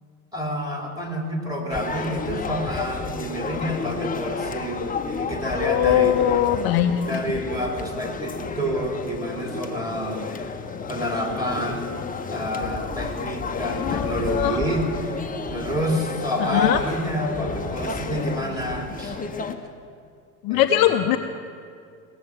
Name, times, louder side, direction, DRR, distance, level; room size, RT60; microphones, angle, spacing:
voice 1, 0.3-6.2 6.9-10.5 10.9-11.9 12.3-15.2 15.5-19.2 20.5-21.1, equal, 10° right, 1 dB, 2.9 m, -28 dB
sound 1, 1.7-19.6, left 4 dB, 15° left, 0.9 m, -31 dB
voice 2, 5.6-7.1 13.8-14.6 16.4-16.8 20.4-21.2, left 12 dB, 45° left, 6 dB, 0.7 m, -21 dB
17.5 x 7.1 x 7.3 m, 2.3 s
hypercardioid pair, 75°, 50 cm